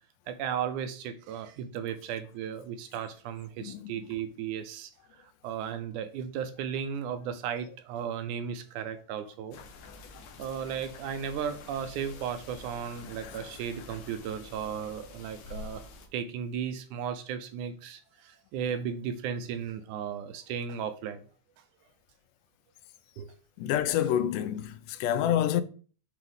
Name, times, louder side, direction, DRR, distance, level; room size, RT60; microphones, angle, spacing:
voice 1, 0.3-4.9 5.4-9.6 10.4-15.9 16.1-21.2 23.2-23.3, right 8 dB, 80° right, 2.1 m, -35 dB
voice 2, 3.6-3.9 23.6-25.6, left 10 dB, 90° left, 2.2 m, -27 dB
sound 1, 9.5-16.1, left 4 dB, 70° left, 1.8 m, -47 dB
7.8 x 3.6 x 3.5 m
omnidirectional pair, 3.6 m